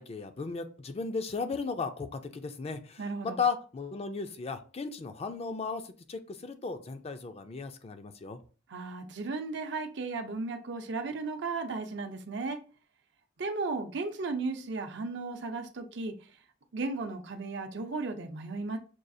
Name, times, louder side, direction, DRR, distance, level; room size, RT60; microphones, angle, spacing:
voice 1, 0.0-8.4, left 5 dB, 35° left, 8 dB, 0.4 m, -35 dB
voice 2, 3.0-3.4 8.7-12.6 13.4-16.1 16.7-18.8, right 3 dB, 65° right, 6 dB, 0.6 m, -35 dB
6.1 x 2.4 x 2.6 m, 0.38 s
head